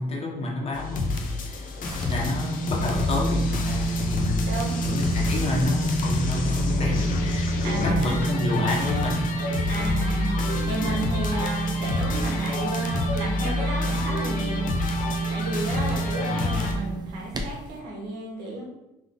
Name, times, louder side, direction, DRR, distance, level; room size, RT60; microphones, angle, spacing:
voice 1, 0.0-1.6 2.1-4.5 4.8-9.4 16.1-16.8, left 2 dB, 35° left, -3 dB, 1.4 m, -29 dB
sound 1, 0.7-16.7, left 3 dB, 55° left, 0.7 m, -28 dB
sound 2, 1.5-17.8, right 4 dB, 25° right, 0.6 m, -30 dB
voice 2, 4.4-4.8 7.6-8.4 9.7-14.7 15.3-18.6, right 2 dB, 90° right, -2 dB, 1.5 m, -33 dB
3.7 x 3.3 x 3.8 m, 0.93 s
cardioid pair, 110°, 17 cm